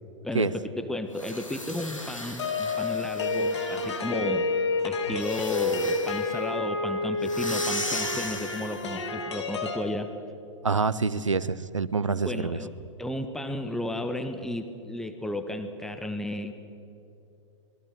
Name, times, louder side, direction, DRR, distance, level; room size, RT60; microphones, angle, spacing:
voice 1, 0.2-4.5 4.8-10.1 12.3-12.7 13.0-16.5, left 1 dB, 5° left, 8 dB, 1.1 m, -33 dB
sound 1, 1.1-4.1 5.2-6.3 7.2-8.9, left 1 dB, 90° left, 2.8 m, -37 dB
sound 2, 2.4-9.8, left 3 dB, 60° left, 3.1 m, -29 dB
voice 2, 10.6-12.6, right 4 dB, 80° right, 18 dB, 0.8 m, -26 dB
26.0 x 21.5 x 6.4 m, 2.9 s
figure-of-eight pair, 105°, 16 cm